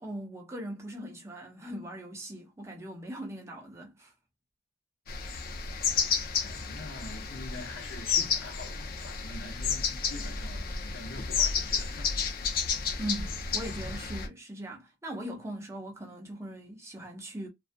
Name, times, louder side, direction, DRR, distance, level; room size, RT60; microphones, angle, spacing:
voice 1, 0.0-4.1 13.0-17.5, right 1 dB, 15° right, 0.6 m, -40 dB
sound 1, 5.1-14.3, left 6 dB, 50° left, 0.4 m, -31 dB
voice 2, 5.7-12.2, left 2 dB, 75° left, 0.8 m, -46 dB
2.4 x 2.3 x 2.5 m
head